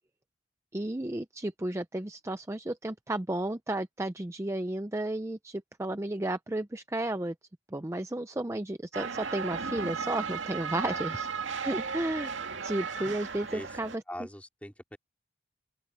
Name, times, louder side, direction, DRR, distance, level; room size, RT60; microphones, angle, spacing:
voice 1, 0.7-7.3 7.7-11.3 11.6-12.3 12.6-14.0, right 1 dB, 15° right, 0.5 m, -33 dB
sound 1, 8.9-14.0, right 5 dB, 80° right, 2.1 m, -35 dB
voice 2, 14.1-15.0, left 1 dB, 5° left, 4.1 m, -42 dB
open air
head